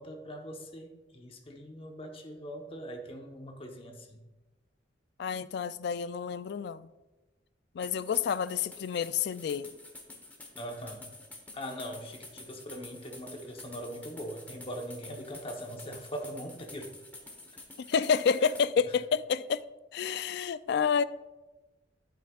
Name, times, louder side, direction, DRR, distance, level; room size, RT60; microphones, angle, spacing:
voice 1, 0.0-4.2 10.6-11.1 11.5-16.9, equal, 30° left, 1.0 m, -41 dB
voice 2, 5.2-6.9 7.7-9.7 17.8-19.6 19.9-21.0, left 6 dB, 60° left, 0.3 m, -29 dB
sound 1, 7.8-18.7, left 2 dB, 10° left, 1.1 m, -49 dB
11.0 x 9.1 x 2.4 m
head